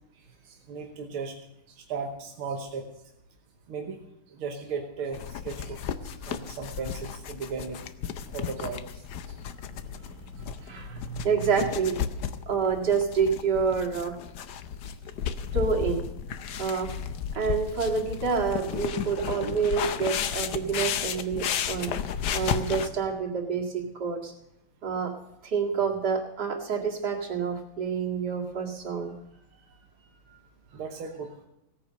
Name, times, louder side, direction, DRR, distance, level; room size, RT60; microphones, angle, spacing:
voice 1, 0.4-1.4 1.7-2.9 3.7-4.0 4.3-7.8 8.3-9.4 30.7-31.4, right 5 dB, 80° right, 2 dB, 2.1 m, -36 dB
sound 1, 5.1-22.9, left 8 dB, 60° left, 1.2 m, -33 dB
voice 2, 10.6-11.9 12.5-14.1 15.5-16.0 16.6-16.9 17.3-21.9 22.3-24.3 24.8-25.1 25.4-29.1, right 5 dB, 50° right, 0 dB, 2.7 m, -28 dB
17.0 x 9.6 x 6.6 m, 0.88 s
omnidirectional pair, 2.3 m